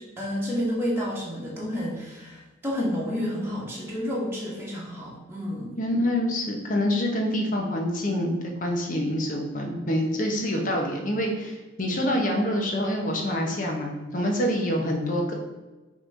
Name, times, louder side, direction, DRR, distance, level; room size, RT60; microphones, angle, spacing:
voice 1, 0.0-5.7, equal, 10° right, -5 dB, 1.4 m, -30 dB
voice 2, 5.8-15.3, equal, 40° left, 1 dB, 1.1 m, -26 dB
5.8 x 3.2 x 5.6 m, 1.2 s
head